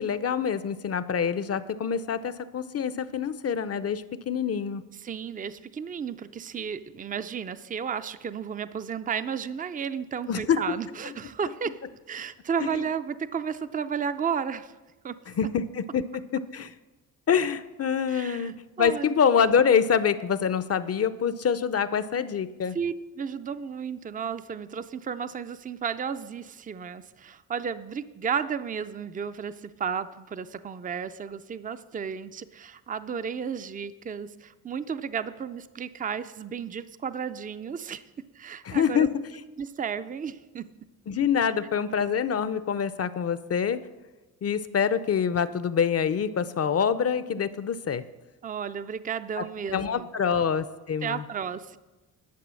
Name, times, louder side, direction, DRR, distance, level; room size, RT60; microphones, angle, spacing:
voice 1, 0.0-4.8 10.3-10.8 12.6-12.8 15.4-16.7 17.3-22.8 38.7-39.2 41.1-43.8 44.4-48.0 49.4-49.5 49.7-51.2, left 7 dB, 40° left, 15 dB, 0.6 m, -26 dB
voice 2, 5.0-11.8 12.1-14.7 15.0-15.2 18.1-18.5 18.8-19.2 22.7-38.0 38.3-39.1 39.6-40.7 48.4-50.4 51.0-51.8, right 7 dB, 20° right, 13 dB, 0.5 m, -33 dB
11.5 x 6.7 x 6.3 m, 1.1 s
cardioid pair, 80°, 38 cm